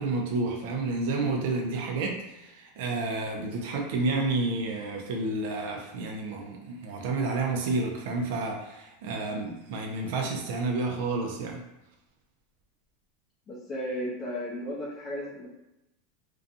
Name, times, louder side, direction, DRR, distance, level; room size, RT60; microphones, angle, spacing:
voice 1, 0.0-11.6, right 3 dB, 55° right, 1 dB, 0.4 m, -30 dB
voice 2, 13.5-15.5, equal, 20° left, -5 dB, 0.7 m, -34 dB
2.5 x 2.2 x 2.6 m, 0.91 s
supercardioid pair, 165°, 0 cm